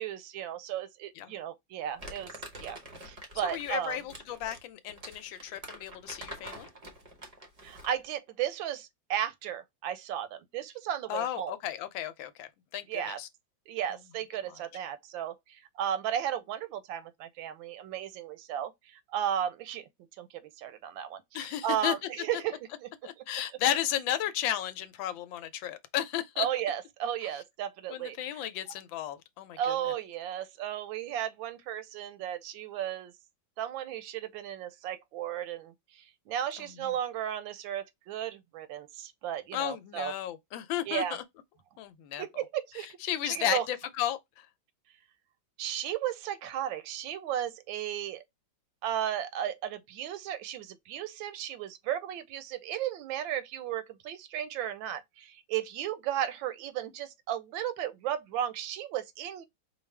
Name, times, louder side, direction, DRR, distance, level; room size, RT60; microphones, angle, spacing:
voice 1, 0.0-2.3 2.6-4.0 7.6-11.6 12.9-13.2 13.7-19.8 20.2-22.9 26.4-28.5 29.6-33.1 33.6-40.1 40.9-41.2 42.2-42.9 43.2-43.7 45.6-48.2 48.8-59.4, right 10 dB, 80° right, 1.3 m, -35 dB
Crumpling crinkling, 2.0-8.1, right 1 dB, 45° right, 0.5 m, -46 dB
voice 2, 3.5-6.7 11.1-13.3 21.3-21.9 23.0-26.5 27.9-29.9 36.6-36.9 39.5-41.2 41.8-42.2 43.0-44.5, left 11 dB, 80° left, 1.3 m, -34 dB
4.6 x 2.4 x 3.3 m
omnidirectional pair, 2.1 m